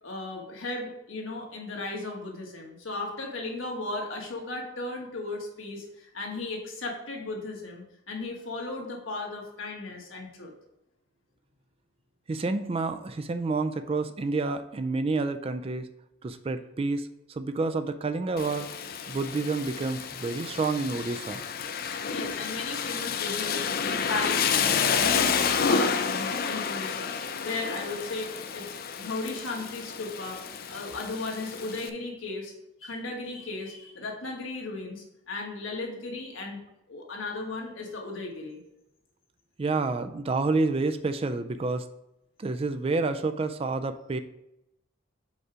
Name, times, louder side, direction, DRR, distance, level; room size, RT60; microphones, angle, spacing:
voice 1, 0.0-10.5 22.1-28.6 29.0-32.5 32.8-36.6 36.9-38.6, left 2 dB, 85° left, 0 dB, 1.5 m, -36 dB
voice 2, 12.3-15.9 16.2-18.7 19.1-21.4 39.6-41.9 42.4-44.2, right 3 dB, 30° right, 10 dB, 0.3 m, -29 dB
Rain, 18.4-31.9, left 6 dB, 50° left, 0.4 m, -30 dB
5.2 x 4.7 x 5.0 m, 0.87 s
head